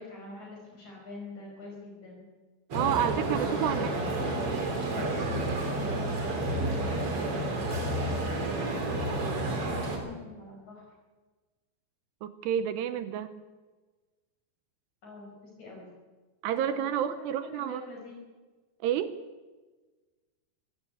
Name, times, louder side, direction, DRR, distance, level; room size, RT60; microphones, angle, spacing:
voice 1, 0.0-2.3 2.7-4.2 6.5-8.0 8.7-10.9 15.0-15.9 16.7-18.2, left 2 dB, 40° left, -1 dB, 6.5 m, -45 dB
sound 1, 2.7-10.0, right 2 dB, 35° right, 3.6 m, -30 dB
voice 2, 2.7-3.9 12.2-13.3 16.4-17.9 18.8-19.1, right 10 dB, 75° right, 12 dB, 2.8 m, -29 dB
22.5 x 16.5 x 8.4 m, 1.3 s
omnidirectional pair, 5.3 m